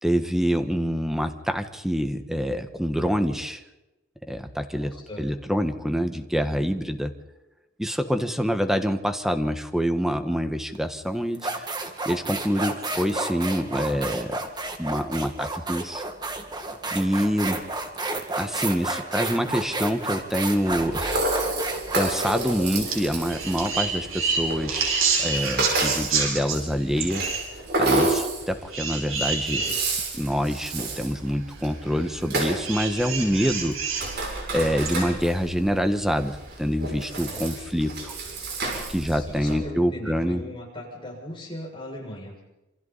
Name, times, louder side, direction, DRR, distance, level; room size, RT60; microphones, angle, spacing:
voice 1, 0.0-3.6 4.3-7.1 7.8-11.7 12.0-14.4 14.8-16.0 16.9-17.6 18.4-21.5 21.9-24.9 25.2-27.2 27.8-29.7 30.1-33.7 34.5-38.1 38.9-40.4, equal, ahead, 7 dB, 1.4 m, -26 dB
voice 2, 4.7-5.2 18.6-18.8 29.5-29.8 34.7-35.1 37.1-37.7 39.1-42.5, left 1 dB, 25° left, -1 dB, 6.8 m, -39 dB
sound 1, 10.8-10.9 11.4-23.7, right 2 dB, 20° right, 2.0 m, -31 dB
Rattle (instrument), 20.6-39.5, right 2 dB, 55° right, 6.5 m, -31 dB
sound 2, 22.9-23.0 23.3-26.6 27.0-27.4 28.7-29.7 30.5-30.6 32.6-34.1 34.8-34.9, right 5 dB, 80° right, 6.6 m, -27 dB
27.5 x 26.5 x 4.2 m, 0.97 s
head